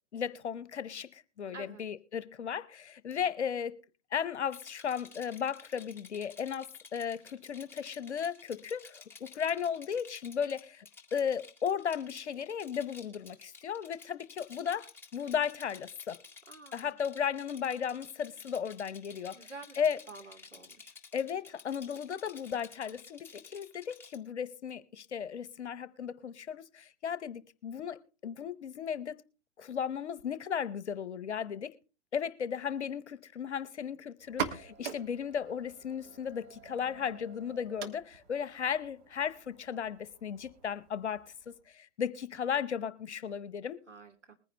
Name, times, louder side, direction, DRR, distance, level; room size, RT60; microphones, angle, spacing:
voice 1, 0.1-3.8 4.1-10.9 11.1-16.2 16.7-20.0 21.1-29.2 29.6-31.7 32.1-43.8, left 7 dB, 70° left, 0.9 m, -35 dB
voice 2, 1.5-1.8 16.5-16.9 19.3-19.8 20.1-20.9 43.9-44.3, right 3 dB, 90° right, 2.7 m, -49 dB
Rattle, 4.5-24.2, left 5 dB, 5° left, 1.9 m, -53 dB
sound 1, 34.2-41.7, right 7 dB, 30° right, 1.4 m, -44 dB
20.5 x 10.0 x 3.2 m
figure-of-eight pair, 115°, 35 cm